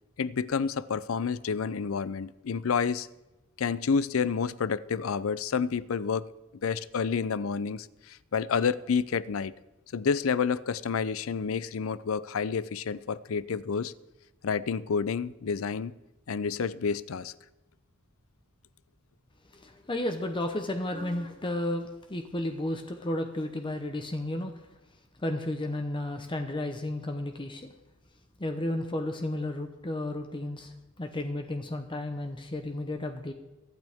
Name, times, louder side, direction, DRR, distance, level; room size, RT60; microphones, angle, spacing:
voice 1, 0.2-3.1 3.6-6.3 6.6-9.5 9.9-13.9 14.4-15.9 16.3-17.3, left 6 dB, 70° left, 0.5 m, -29 dB
voice 2, 19.5-24.6 25.2-27.7 28.4-33.3, left 1 dB, 25° left, 0.9 m, -33 dB
23.0 x 9.1 x 3.6 m
head